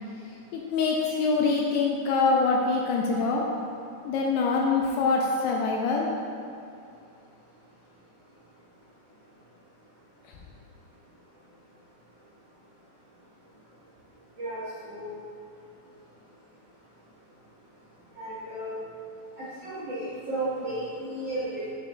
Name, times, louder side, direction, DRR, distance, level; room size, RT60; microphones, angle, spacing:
voice 1, 0.5-3.4 4.1-6.1, left 4 dB, 85° left, -1 dB, 2.4 m, -24 dB
voice 2, 14.4-15.2 18.2-18.8 19.4-21.7, right 1 dB, 75° right, -12 dB, 1.4 m, -34 dB
8.0 x 6.4 x 2.3 m, 2.5 s
omnidirectional pair, 5.0 m